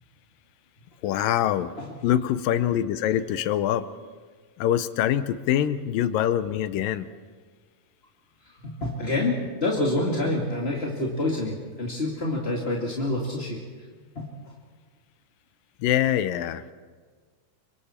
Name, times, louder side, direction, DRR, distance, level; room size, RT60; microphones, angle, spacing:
voice 1, 1.0-1.7 2.0-3.9 4.6-7.1 15.8-16.7, left 11 dB, 80° left, 13 dB, 2.4 m, -24 dB
voice 2, 8.4-13.9 14.1-14.3, left 2 dB, 25° left, -2 dB, 1.6 m, -27 dB
28.5 x 25.0 x 4.4 m, 1.5 s
omnidirectional pair, 4.1 m